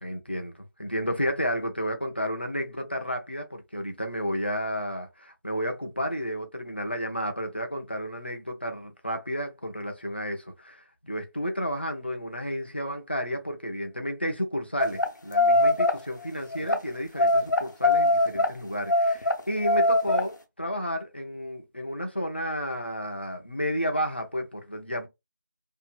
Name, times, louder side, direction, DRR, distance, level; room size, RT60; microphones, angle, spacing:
voice 1, 0.0-25.1, equal, 35° left, 0.5 m, -32 dB
sound 1, 14.8-15.1 15.3-16.0 16.5-16.8 17.2-18.5 18.9-20.2, left 2 dB, 65° left, 0.8 m, -21 dB
2.7 x 2.2 x 2.4 m
figure-of-eight pair, 180°, 10 cm